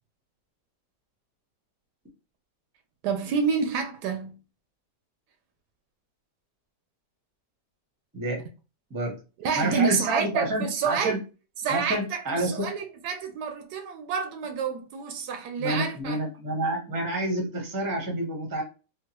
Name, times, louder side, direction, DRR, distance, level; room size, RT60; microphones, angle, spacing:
voice 1, 3.0-4.3 9.4-11.2 11.6-16.2, right 6 dB, 75° right, 1.1 m, -28 dB
voice 2, 8.1-8.4 8.9-9.2 9.5-11.2 11.7-12.7 15.6-18.6, right 1 dB, 20° right, 0.6 m, -28 dB
3.7 x 2.0 x 2.8 m
omnidirectional pair, 1.9 m